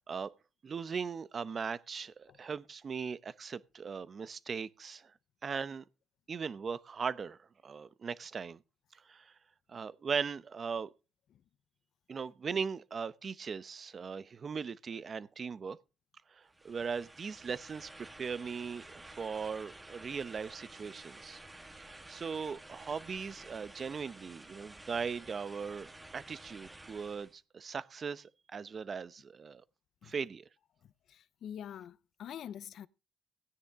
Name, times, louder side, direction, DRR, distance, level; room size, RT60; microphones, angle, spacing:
voice 1, 0.6-5.1 5.4-5.8 6.3-8.6 8.9-9.3 9.7-10.9 12.1-15.8 16.3-21.4 21.8-29.6 30.0-30.5, right 6 dB, 45° right, 0.8 m, -39 dB
sound 1, 16.5-27.4, right 2 dB, 15° right, 1.8 m, -52 dB
voice 2, 31.1-32.9, left 9 dB, 70° left, 0.6 m, -45 dB
16.5 x 9.9 x 3.6 m
cardioid pair, 90°, 0 cm